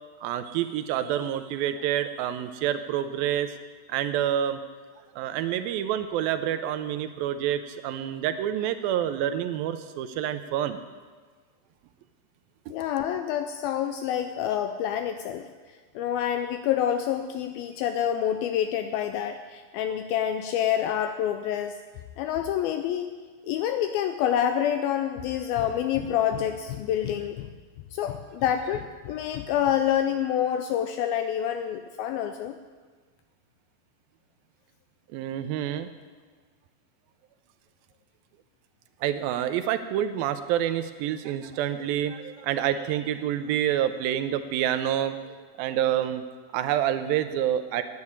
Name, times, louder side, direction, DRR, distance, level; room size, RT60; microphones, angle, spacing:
voice 1, 0.2-3.5 3.9-4.6 5.2-10.8 12.7-12.8 35.1-35.9 39.0-46.2 46.5-47.8, right 10 dB, 80° right, 10 dB, 2.2 m, -28 dB
voice 2, 12.7-15.5 16.0-21.8 22.2-23.1 23.4-27.5 27.9-32.6, left 10 dB, 80° left, 8 dB, 2.3 m, -27 dB
10.5 x 8.6 x 9.5 m, 1.5 s
omnidirectional pair, 4.5 m